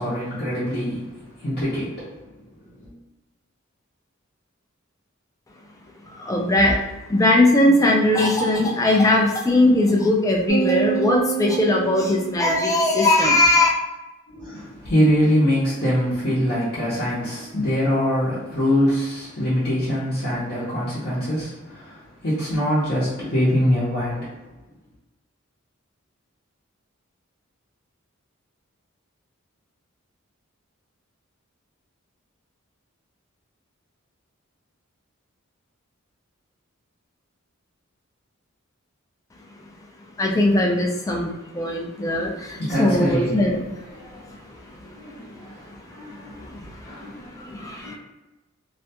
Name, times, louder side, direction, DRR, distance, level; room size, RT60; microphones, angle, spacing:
voice 1, 0.0-2.9 14.3-24.4 42.1-43.5 43.7-48.0, equal, 50° left, -10 dB, 0.7 m, -24 dB
voice 2, 6.3-6.8 7.1-13.7 40.2-41.3 41.6-42.3 42.8-43.6, left 1 dB, 15° left, 0 dB, 0.3 m, -19 dB
sound 1, 10.5-13.0, right 9 dB, 80° right, 0.8 m, -27 dB
2.4 x 2.2 x 2.7 m, 1.1 s
head